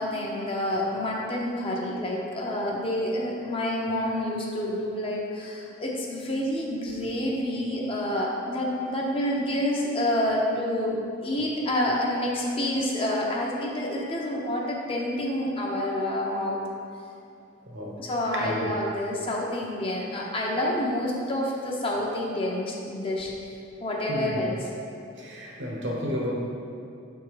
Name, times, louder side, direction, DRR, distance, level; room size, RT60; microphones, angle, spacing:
voice 1, 0.0-16.6 18.0-23.3 23.8-24.6, left 1 dB, 30° left, -2 dB, 0.7 m, -28 dB
voice 2, 17.7-18.0 18.3-18.8 24.1-24.4 25.2-26.3, left 1 dB, 60° right, -1 dB, 1.0 m, -32 dB
6.3 x 3.7 x 4.7 m, 2.6 s
head